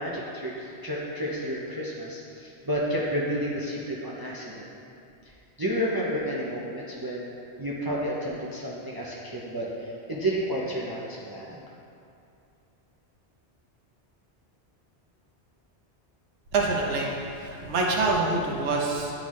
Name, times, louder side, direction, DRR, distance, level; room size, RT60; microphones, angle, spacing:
voice 1, 0.0-4.7 5.6-11.6, equal, 30° right, -5 dB, 0.5 m, -31 dB
voice 2, 16.5-19.1, right 3 dB, 80° right, -2 dB, 1.1 m, -26 dB
9.8 x 3.9 x 3.1 m, 2.6 s
omnidirectional pair, 1.2 m